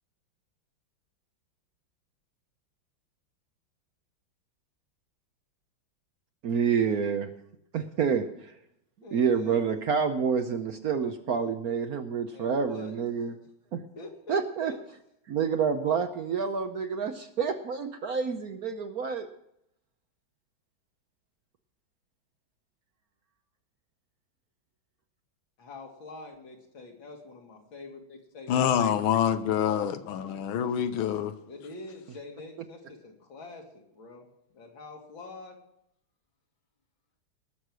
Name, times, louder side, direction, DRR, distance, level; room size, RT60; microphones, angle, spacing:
voice 1, 6.4-7.3 7.7-8.5 9.1-13.3 13.7-13.8 14.3-14.7 15.3-19.3, right 6 dB, 60° right, 8 dB, 1.0 m, -28 dB
voice 2, 9.0-9.6 12.3-13.0 13.9-14.8 25.6-29.9 31.4-34.3 34.5-35.6, left 3 dB, 70° left, 1 dB, 2.9 m, -45 dB
voice 3, 28.5-31.3, left 9 dB, 90° left, 10 dB, 1.6 m, -26 dB
19.5 x 6.5 x 6.1 m, 0.77 s
omnidirectional pair, 2.2 m